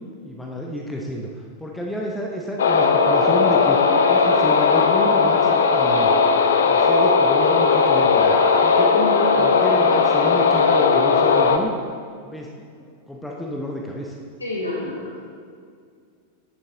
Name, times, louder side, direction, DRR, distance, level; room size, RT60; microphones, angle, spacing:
voice 1, 0.2-3.8 4.1-6.1 6.6-8.3 8.6-9.0 9.4-11.7 12.2-14.2, equal, 5° left, -1 dB, 0.8 m, -30 dB
sound 1, 2.6-11.6, left 5 dB, 65° left, 0.5 m, -17 dB
voice 2, 8.1-8.6 8.9-9.7 14.4-15.3, left 1 dB, 80° left, -5 dB, 2.3 m, -29 dB
8.8 x 6.9 x 3.8 m, 2.2 s
figure-of-eight pair, 90°, 0 cm